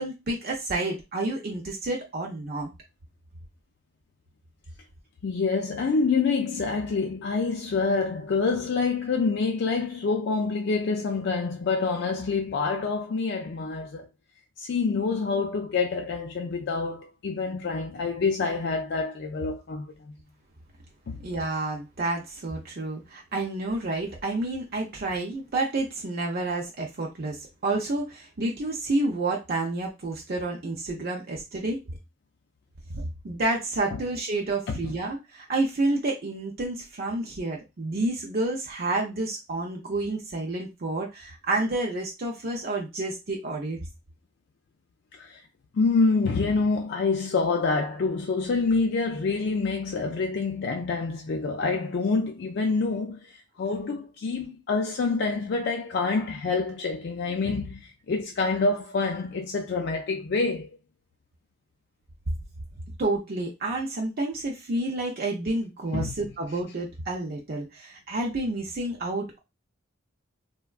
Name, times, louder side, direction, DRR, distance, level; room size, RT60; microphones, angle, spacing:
voice 1, 0.0-2.7 21.2-31.8 32.9-43.8 63.0-69.4, right 2 dB, 45° right, 0.5 m, -29 dB
voice 2, 5.2-14.1 14.6-20.1 21.1-21.2 33.9-34.0 34.7-35.0 45.1-45.4 45.7-60.8 65.9-66.1, left 4 dB, 55° left, 0.4 m, -27 dB
3.4 x 2.2 x 2.3 m
head